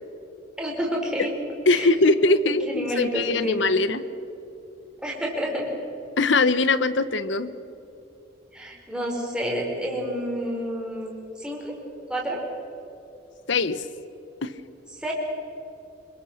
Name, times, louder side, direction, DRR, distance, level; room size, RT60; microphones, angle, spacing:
voice 1, 0.6-1.3 1.7-2.1 2.7-3.7 5.0-5.7 8.5-11.7 12.1-12.4 14.9-15.1, equal, 5° right, -2 dB, 4.5 m, -29 dB
voice 2, 1.7-4.0 6.2-7.5 13.5-13.8 14.4-14.5, left 3 dB, 75° left, 14 dB, 1.0 m, -21 dB
25.5 x 22.5 x 6.6 m, 2.9 s
head